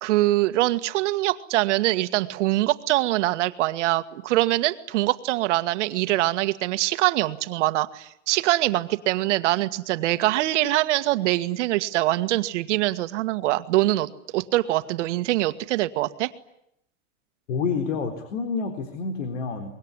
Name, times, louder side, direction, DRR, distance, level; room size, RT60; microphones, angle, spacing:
voice 1, 0.0-16.3, right 16 dB, 70° right, 11 dB, 1.8 m, -23 dB
voice 2, 17.5-19.7, left 5 dB, 85° left, 8 dB, 4.0 m, -28 dB
25.5 x 22.5 x 9.8 m, 0.77 s
supercardioid pair, 150°, 37 cm